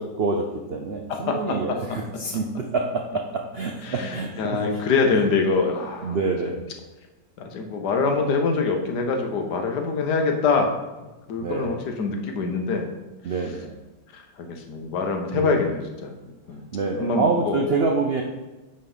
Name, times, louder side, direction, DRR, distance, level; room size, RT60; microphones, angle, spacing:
voice 1, 0.0-4.8 6.0-6.6 11.4-11.8 13.2-13.7 15.3-15.6 16.7-18.2, right 3 dB, 85° right, 2 dB, 0.5 m, -26 dB
voice 2, 1.1-1.8 2.3-2.4 3.8-6.2 7.4-10.7 11.3-12.9 14.1-16.2 16.5-16.6 17.0-17.6, left 4 dB, 70° left, 3 dB, 1.4 m, -24 dB
8.9 x 3.3 x 5.5 m, 1.1 s
omnidirectional pair, 1.9 m